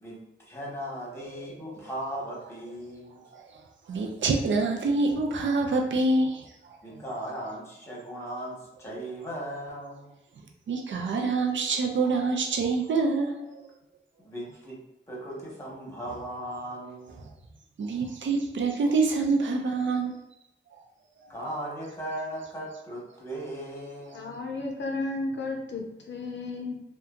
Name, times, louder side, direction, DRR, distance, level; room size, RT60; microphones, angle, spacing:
voice 1, 0.0-3.2 6.8-10.1 13.0-13.6 14.2-14.8 15.1-17.2 21.3-24.4, right 1 dB, 15° left, -5 dB, 1.0 m, -38 dB
voice 2, 3.9-6.4 10.7-13.3 17.8-20.1, right 3 dB, 70° right, 2 dB, 0.4 m, -26 dB
voice 3, 24.1-26.8, left 2 dB, 65° left, 1 dB, 0.5 m, -33 dB
2.8 x 2.2 x 2.4 m, 0.87 s
wide cardioid pair, 80°, 20 cm